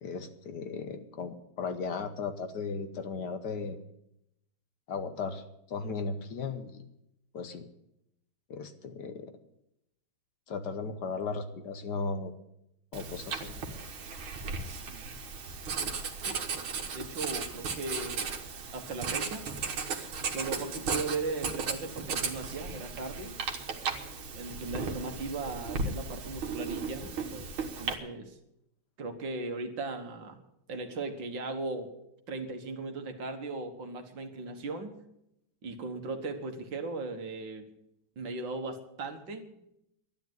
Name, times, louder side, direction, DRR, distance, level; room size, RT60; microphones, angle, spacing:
voice 1, 0.0-3.8 4.9-5.4 5.7-6.8 7.3-7.7 8.5-9.3 10.5-12.3 12.9-13.5, left 4 dB, 60° left, 9 dB, 1.5 m, -36 dB
Writing, 12.9-27.9, right 5 dB, 90° right, 2.3 m, -36 dB
voice 2, 16.9-18.3 18.7-19.5 20.3-23.4 24.3-27.5 27.8-28.4 29.0-30.4 30.7-31.9 32.3-35.0 35.6-37.7 38.2-39.6, right 3 dB, 65° right, 6 dB, 2.1 m, -37 dB
12.0 x 10.0 x 9.4 m, 0.81 s
omnidirectional pair, 2.2 m